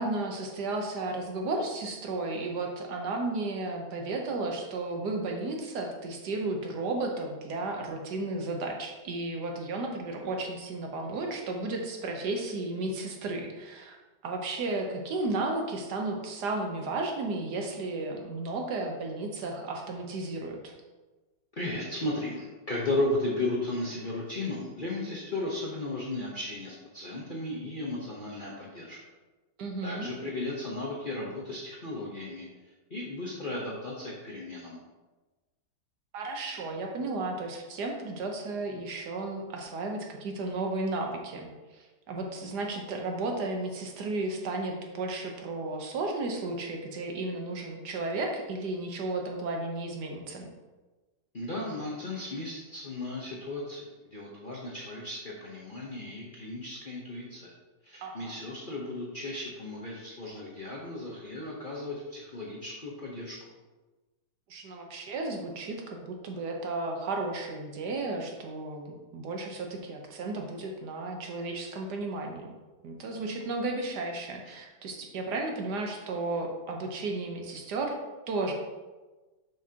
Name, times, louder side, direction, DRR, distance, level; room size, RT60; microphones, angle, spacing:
voice 1, 0.0-14.0 14.2-20.7 29.6-30.1 36.1-50.5 58.0-58.4 64.5-72.5 72.8-78.0 78.3-78.5, right 2 dB, 65° right, 2 dB, 1.4 m, -33 dB
voice 2, 21.6-29.0 29.8-32.5 32.9-34.8 51.3-57.5 57.8-63.4, left 2 dB, 40° left, -5 dB, 0.8 m, -35 dB
7.2 x 6.6 x 2.8 m, 1.2 s
omnidirectional pair, 2.0 m